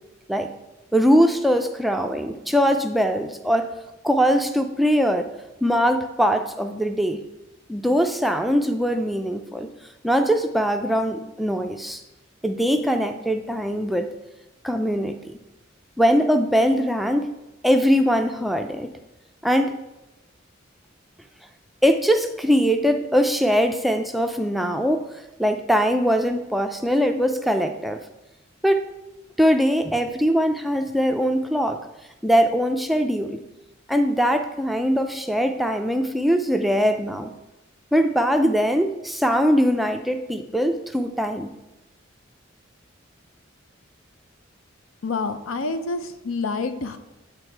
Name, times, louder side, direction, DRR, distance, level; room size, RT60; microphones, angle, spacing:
voice 1, 0.9-3.7 4.0-5.3 5.6-7.2 7.7-9.7 10.0-12.0 12.4-14.1 14.6-15.3 16.0-17.3 17.6-18.9 19.4-19.7 21.8-25.1 25.4-28.0 28.6-28.9 29.4-31.8 32.2-33.4 33.9-37.3 37.9-41.5, equal, ahead, 5 dB, 0.3 m, -21 dB
voice 2, 45.0-47.0, left 3 dB, 85° left, 10 dB, 0.5 m, -27 dB
8.9 x 3.9 x 4.5 m, 0.98 s
head